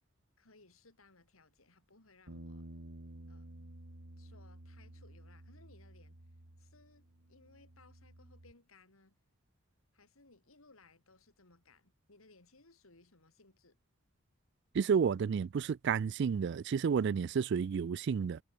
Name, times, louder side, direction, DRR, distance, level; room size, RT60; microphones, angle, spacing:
voice 1, 0.4-2.7 3.3-3.5 4.2-6.2 6.6-9.2 9.9-13.8, left 3 dB, 80° left, 3.4 m, -63 dB
sound 1, 2.3-8.5, right 1 dB, 75° right, 2.2 m, -52 dB
voice 2, 14.7-18.4, right 6 dB, 55° right, 0.3 m, -31 dB
head